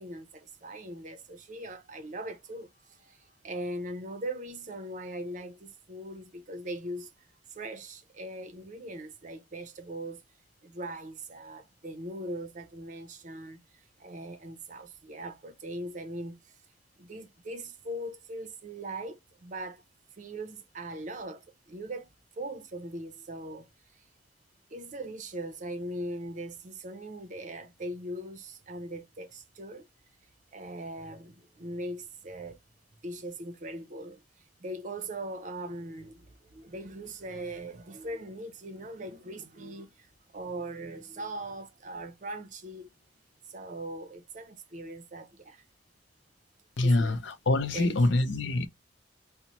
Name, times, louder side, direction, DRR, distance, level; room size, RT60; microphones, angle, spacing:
voice 1, 0.0-7.1 7.5-10.2 10.6-16.5 17.0-19.8 20.2-24.0 24.7-29.9 30.5-32.6 33.0-42.9 43.5-45.6 46.8-47.2 47.7-48.0, right 1 dB, 40° right, 0.6 m, -40 dB
voice 2, 46.8-48.7, left 2 dB, 70° left, 0.5 m, -25 dB
4.0 x 2.1 x 2.9 m
head